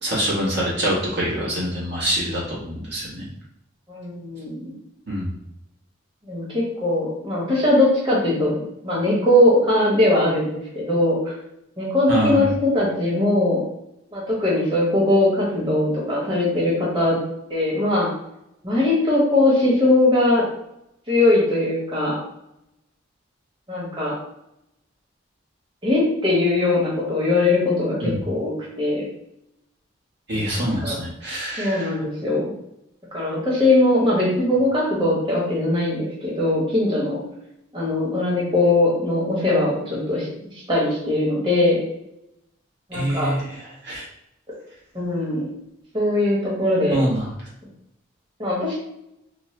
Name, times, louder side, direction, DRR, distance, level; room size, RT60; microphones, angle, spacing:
voice 1, 0.0-3.3 5.1-5.4 12.1-12.5 28.0-28.2 30.3-32.0 42.9-44.0 46.9-47.3, right 1 dB, 55° right, -6 dB, 1.3 m, -25 dB
voice 2, 3.9-4.7 6.3-8.6 8.8-11.2 11.8-13.6 14.1-17.2 17.5-18.1 18.6-20.4 21.1-22.2 23.7-24.1 25.8-29.0 30.3-31.0 31.6-32.5 33.1-37.2 37.7-40.3 40.7-41.8 42.9-43.4 44.9-45.5 45.9-47.0 48.4-48.8, left 1 dB, 25° right, -6 dB, 1.2 m, -20 dB
4.4 x 2.1 x 3.2 m, 0.82 s
head